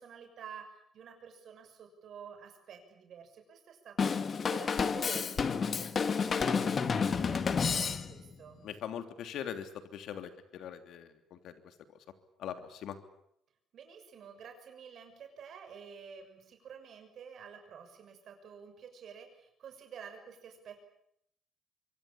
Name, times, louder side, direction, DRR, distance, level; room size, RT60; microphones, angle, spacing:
voice 1, 0.0-8.7 13.7-20.8, right 7 dB, 55° right, 5 dB, 6.4 m, -50 dB
Drum kit / Drum, 4.0-8.3, left 5 dB, 35° left, 1.7 m, -30 dB
voice 2, 8.6-11.7 12.4-13.0, left 9 dB, 70° left, 8 dB, 3.1 m, -42 dB
25.0 x 24.0 x 8.7 m, 0.72 s
cardioid pair, 125°, 0 cm